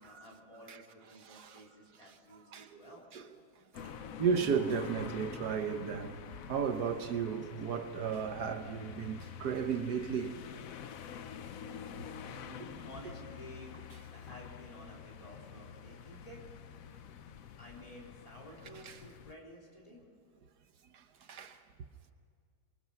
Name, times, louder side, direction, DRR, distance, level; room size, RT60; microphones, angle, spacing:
voice 1, 0.0-3.1 12.1-13.8 14.1-16.4 17.6-20.1 21.6-21.7, left 1 dB, 20° left, 4.2 m, -53 dB
voice 2, 1.3-1.6 2.5-2.7 3.1-3.2 4.2-6.2 6.5-10.3 18.9-19.0 20.9-21.0 21.3-21.6, right 6 dB, 75° right, 1.5 m, -34 dB
sound 1, 3.7-19.3, left 8 dB, 60° left, 1.1 m, -47 dB
26.0 x 23.0 x 5.8 m
omnidirectional pair, 1.8 m